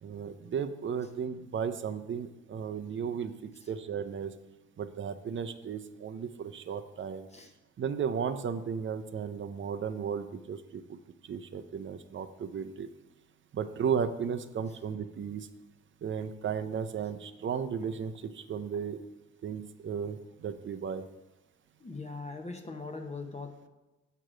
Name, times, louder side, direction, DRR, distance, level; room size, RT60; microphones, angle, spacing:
voice 1, 0.0-4.3 4.8-7.3 7.8-11.0 11.3-12.9 13.5-15.5 16.0-19.0 19.4-21.0, right 7 dB, 40° right, 9 dB, 0.6 m, -35 dB
voice 2, 21.8-23.7, left 3 dB, 20° left, 5 dB, 0.9 m, -41 dB
7.7 x 4.8 x 5.0 m, 1.1 s
cardioid pair, 90°, 30 cm